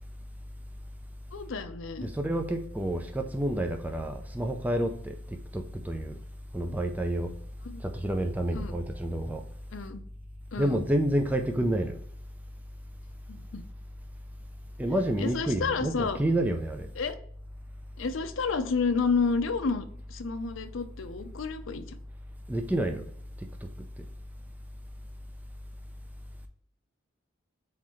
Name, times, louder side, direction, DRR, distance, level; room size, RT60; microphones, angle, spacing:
voice 1, 1.3-2.1 7.6-7.8 8.5-8.7 9.7-10.0 10.5-10.8 13.3-13.6 15.2-16.2 17.0-17.2 18.0-22.0, left 4 dB, 70° left, 9 dB, 0.5 m, -30 dB
voice 2, 2.0-5.2 5.5-6.2 6.5-7.3 7.8-9.4 10.6-12.0 14.8-16.9 22.5-23.0, right 1 dB, 10° right, 4 dB, 0.3 m, -29 dB
4.2 x 3.8 x 3.0 m, 0.63 s
head